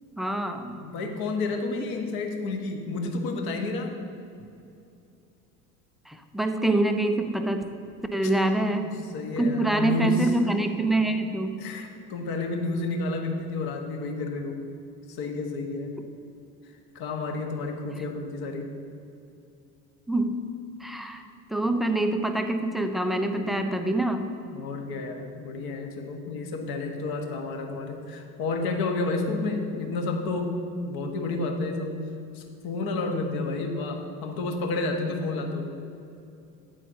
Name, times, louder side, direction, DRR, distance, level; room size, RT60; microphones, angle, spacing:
voice 1, 0.2-0.8 6.1-7.6 8.1-8.9 9.4-11.6 20.1-20.5 20.8-21.2 21.5-24.3, right 2 dB, ahead, 6 dB, 0.5 m, -25 dB
voice 2, 0.7-3.9 8.2-8.3 8.6-10.3 11.6-14.6 15.1-15.9 16.9-18.7 23.3-23.6 24.5-32.0 32.3-35.6, left 3 dB, 50° left, 3 dB, 1.5 m, -31 dB
11.5 x 9.2 x 2.8 m, 2.6 s
figure-of-eight pair, 65°, 48 cm